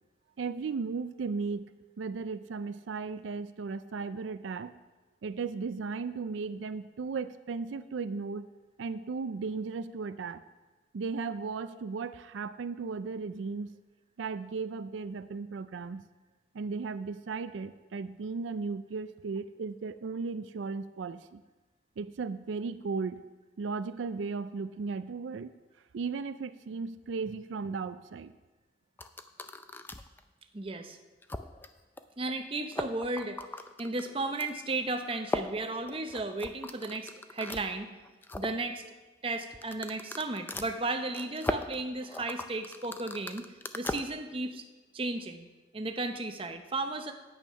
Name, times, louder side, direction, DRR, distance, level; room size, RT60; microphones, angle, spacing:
voice 1, 0.4-1.7 2.0-4.7 5.2-8.5 8.8-10.4 10.9-13.7 14.2-16.0 16.5-21.4 22.0-23.2 23.6-25.5 25.9-28.3, right 4 dB, 85° right, 13 dB, 0.4 m, -36 dB
sound 1, 29.0-30.2 30.7-30.8 31.2-31.7 32.0-32.1 32.3-32.4 32.6-34.5 35.2-37.7 38.0-38.6 39.5-44.0, left 1 dB, 10° left, 0.4 m, -38 dB
voice 2, 30.5-31.0 32.2-33.4 33.8-37.9 38.4-38.8 39.2-43.5 43.7-44.6 44.9-45.5 45.7-47.1, right 2 dB, 30° right, 6 dB, 0.7 m, -34 dB
9.0 x 8.9 x 5.6 m, 1.2 s
head